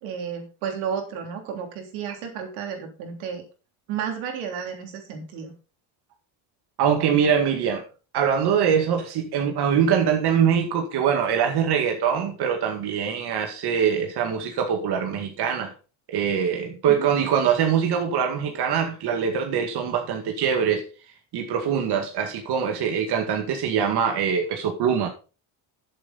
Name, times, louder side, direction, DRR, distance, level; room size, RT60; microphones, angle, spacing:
voice 1, 0.0-3.4 3.9-5.5 16.9-17.1, right 7 dB, 90° right, 3.4 m, -32 dB
voice 2, 6.8-7.8 8.1-15.7 16.1-20.9 21.3-25.1, right 7 dB, 55° right, 2.1 m, -23 dB
11.5 x 7.8 x 4.1 m
cardioid pair, 135°, 46 cm